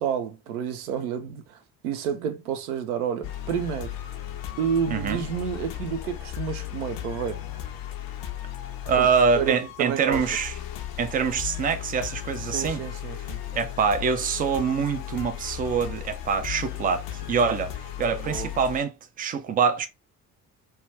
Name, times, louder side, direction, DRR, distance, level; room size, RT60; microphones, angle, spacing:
voice 1, 0.0-1.6 1.8-3.9 4.6-7.4 9.0-9.1 9.4-10.2 12.5-13.4 18.2-18.5, right 8 dB, 75° right, 0.6 m, -30 dB
sound 1, 3.2-18.8, left 12 dB, 50° left, 0.6 m, -36 dB
voice 2, 4.9-5.2 8.9-10.5 11.0-12.8 13.5-19.9, right 6 dB, 20° right, 0.3 m, -25 dB
2.3 x 2.2 x 3.3 m
figure-of-eight pair, 45°, 45 cm